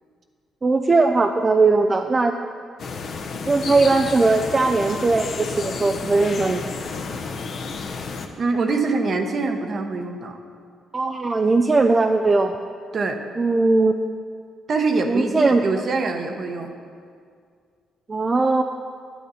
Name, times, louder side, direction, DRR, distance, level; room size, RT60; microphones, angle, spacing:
voice 1, 0.6-2.4 3.5-6.6 10.9-12.5 13.4-13.9 15.1-15.6 18.1-18.6, right 3 dB, 30° right, 4 dB, 0.4 m, -19 dB
sound 1, 2.8-8.3, left 4 dB, 60° left, 0.9 m, -31 dB
voice 2, 8.4-10.4 12.9-13.2 14.7-16.7, right 3 dB, 50° right, 5 dB, 1.0 m, -24 dB
10.5 x 9.2 x 4.2 m, 2.2 s
cardioid pair, 90°, 0 cm